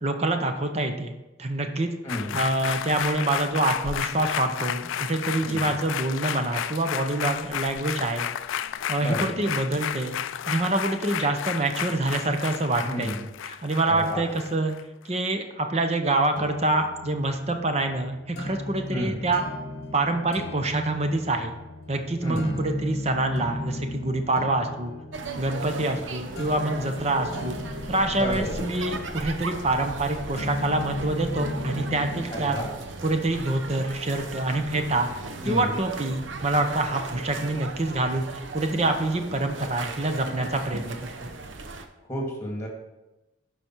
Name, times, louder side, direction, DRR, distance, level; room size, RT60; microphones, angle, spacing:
voice 1, 0.0-1.1 1.4-1.9 2.3-8.3 8.9-10.2 10.5-13.1 13.4-14.7 15.0-19.4 19.9-21.6 21.9-24.9 25.4-27.6 27.9-32.6 33.0-35.1 35.4-41.3, right 2 dB, 35° right, 6 dB, 0.8 m, -26 dB
voice 2, 2.0-2.4 5.4-5.7 9.0-9.4 12.8-13.2 13.9-14.2 18.9-19.2 22.2-22.6 28.2-28.6 32.3-32.7 35.4-35.8 42.1-42.7, equal, 15° left, 0 dB, 2.1 m, -31 dB
sound 1, 2.1-14.8 15.1-15.2, left 10 dB, 80° left, 0.3 m, -32 dB
sound 2, 16.4-32.4, left 1 dB, 55° left, 0.9 m, -36 dB
sound 3, 25.1-41.9, right 3 dB, 75° right, 0.8 m, -37 dB
12.0 x 4.9 x 4.6 m, 1.0 s
head